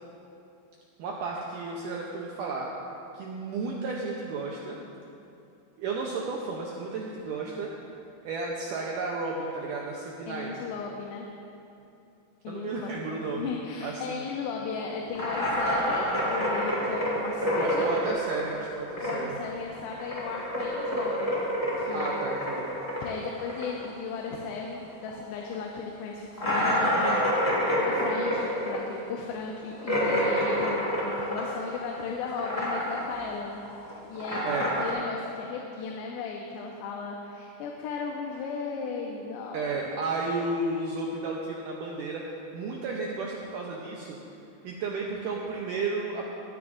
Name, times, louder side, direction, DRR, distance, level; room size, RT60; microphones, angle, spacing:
voice 1, 1.0-2.7 3.1-4.8 5.8-7.7 8.2-10.6 12.5-13.5 13.8-14.2 17.6-19.4 21.9-22.8 34.5-34.7 39.5-44.2 44.6-46.3, right 3 dB, 85° right, -2 dB, 1.8 m, -33 dB
voice 2, 10.3-11.3 12.4-17.9 19.0-21.3 21.8-22.1 23.0-27.2 27.8-40.0, left 5 dB, 85° left, 0 dB, 2.9 m, -36 dB
sound 1, 15.1-19.4 19.7-24.8 25.0-25.1 25.5-25.6 26.4-32.0 32.2-33.2 33.4-34.9, equal, 40° left, 0.5 m, -28 dB
19.0 x 9.5 x 2.6 m, 2.8 s
omnidirectional pair, 4.8 m